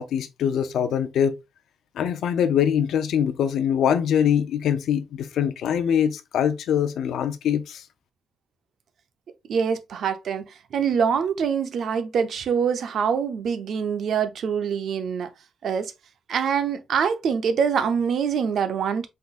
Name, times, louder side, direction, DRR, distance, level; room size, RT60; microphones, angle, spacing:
voice 1, 0.0-1.4 2.0-7.8, left 8 dB, 75° left, 0.5 m, -23 dB
voice 2, 9.5-15.3 15.6-15.9 16.3-19.1, right 7 dB, 55° right, 0.6 m, -24 dB
5.7 x 3.7 x 2.4 m
wide cardioid pair, 180°, 0 cm